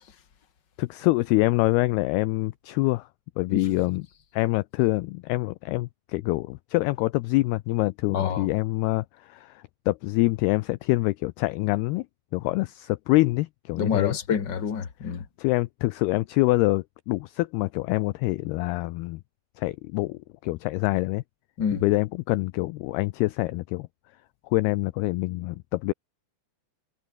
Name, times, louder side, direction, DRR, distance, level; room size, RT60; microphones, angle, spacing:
voice 1, 0.8-3.1 3.4-4.1 4.3-12.1 12.3-14.2 15.4-19.2 19.6-21.2 21.8-23.9 24.5-25.9, left 21 dB, 90° left, 2.2 m, -25 dB
voice 2, 8.1-8.5 13.8-15.2 21.6-21.8, left 7 dB, 40° left, 1.6 m, -27 dB
omnidirectional pair, 5.2 m